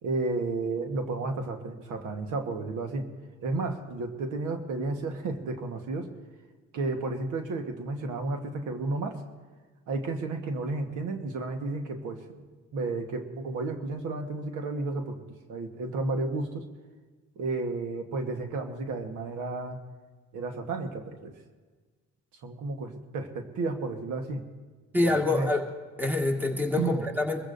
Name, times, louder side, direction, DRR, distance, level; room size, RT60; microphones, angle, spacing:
voice 1, 0.0-3.1 3.4-6.1 6.7-9.2 9.9-12.3 12.7-15.2 15.5-16.6 17.4-19.8 20.3-21.3 22.4-24.4 25.0-25.5 26.8-27.0, right 3 dB, 85° right, 5 dB, 1.3 m, -32 dB
voice 2, 24.9-25.7 26.0-27.4, left 2 dB, 5° right, 1 dB, 1.8 m, -26 dB
23.0 x 15.0 x 2.6 m, 1.4 s
cardioid pair, 90°, 30 cm